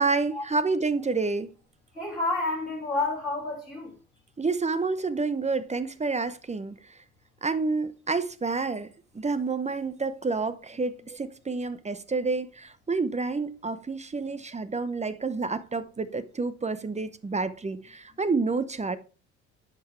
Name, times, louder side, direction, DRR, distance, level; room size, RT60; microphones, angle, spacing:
voice 1, 0.0-1.5 4.4-6.8 7.4-8.9 9.1-19.0, right 4 dB, 20° right, 0.8 m, -29 dB
voice 2, 1.9-3.9, left 2 dB, ahead, 4.3 m, -29 dB
10.5 x 6.0 x 3.2 m
hypercardioid pair, 60°, 35 cm